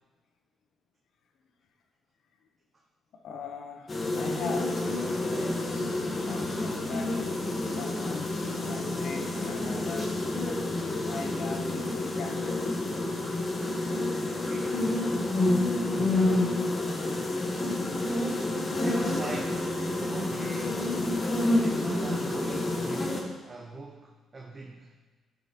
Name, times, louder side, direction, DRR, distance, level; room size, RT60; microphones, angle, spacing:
voice 1, 3.1-4.9 5.2-10.3 11.1-12.8, left 5 dB, 70° left, 4 dB, 0.9 m, -41 dB
sound 1, 3.9-23.2, left 2 dB, 30° left, 1.3 m, -29 dB
voice 2, 14.4-15.1 18.8-19.7 20.1-21.0 21.5-24.9, right 3 dB, 30° right, 0 dB, 0.9 m, -40 dB
10.5 x 5.6 x 2.9 m, 1.3 s
cardioid pair, 90°, 0 cm